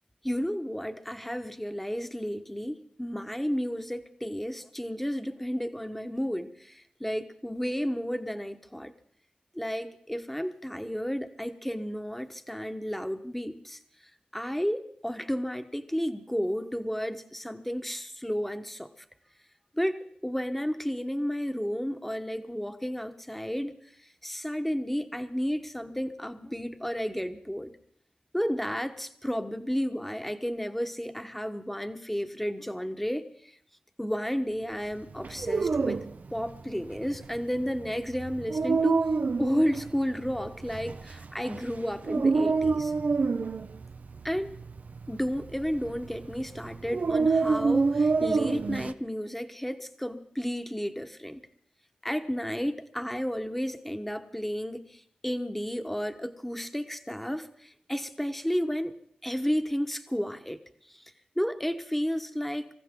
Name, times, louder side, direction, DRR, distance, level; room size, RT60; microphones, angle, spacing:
voice 1, 0.2-8.9 9.5-13.8 14.3-18.9 19.8-23.8 24.2-27.7 28.3-33.2 34.0-36.0 36.3-39.1 39.4-42.9 44.2-44.6 45.1-51.4 52.0-58.9 59.2-60.6 60.9-61.0 61.4-62.7, equal, 5° left, 8 dB, 1.2 m, -32 dB
Dog, 35.2-48.9, right 4 dB, 65° right, 0.6 m, -28 dB
25.5 x 14.5 x 3.7 m, 0.64 s
cardioid pair, 60°, 3 cm